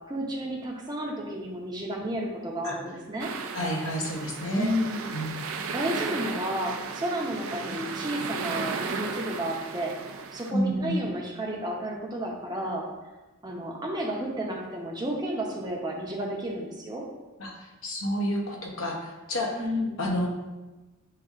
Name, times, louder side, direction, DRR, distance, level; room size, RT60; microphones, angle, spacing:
voice 1, 0.0-3.3 4.5-5.1 5.7-9.9 10.3-12.9 13.4-17.0 19.6-20.0, equal, 20° right, -1 dB, 0.6 m, -32 dB
sound 1, 3.2-10.5, right 5 dB, 80° right, 0.4 m, -35 dB
voice 2, 3.5-4.7 5.1-5.4 10.5-11.0 17.4-19.6 20.0-20.3, equal, 75° left, 0 dB, 0.8 m, -29 dB
7.5 x 2.6 x 2.4 m, 1.1 s
head